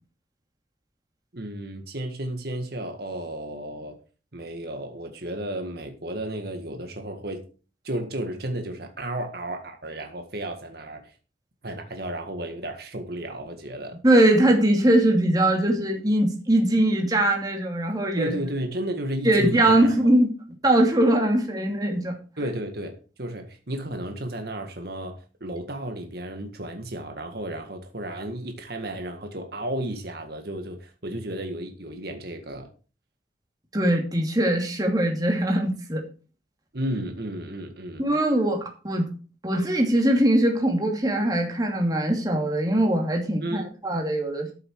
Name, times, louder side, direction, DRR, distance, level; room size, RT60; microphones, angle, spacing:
voice 1, 1.3-4.0 4.3-7.4 7.8-11.1 11.6-14.0 18.2-19.9 22.4-32.7 36.7-38.0 43.4-43.7, right 1 dB, 60° right, 5 dB, 1.8 m, -33 dB
voice 2, 14.0-18.3 19.2-20.3 20.6-22.1 33.7-36.0 38.0-39.1 39.4-44.5, right 1 dB, 20° right, 1 dB, 2.6 m, -21 dB
13.5 x 7.0 x 4.7 m, 0.35 s
head